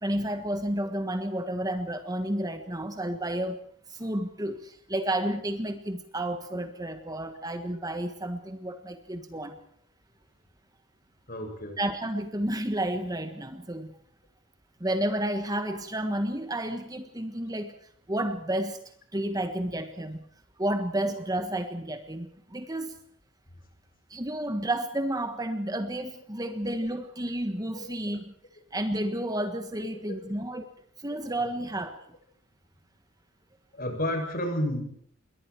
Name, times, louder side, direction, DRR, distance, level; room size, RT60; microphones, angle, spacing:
voice 1, 0.0-3.6 3.9-9.6 11.8-13.9 14.8-17.8 18.1-18.8 19.1-20.2 20.6-23.0 24.1-28.3 28.7-30.6 31.0-32.0, right 1 dB, 20° right, 8 dB, 1.5 m, -31 dB
voice 2, 11.3-11.8 27.7-28.0 29.9-30.2 33.7-34.8, left 1 dB, 45° left, 4 dB, 7.5 m, -31 dB
27.5 x 22.5 x 4.7 m, 0.65 s
head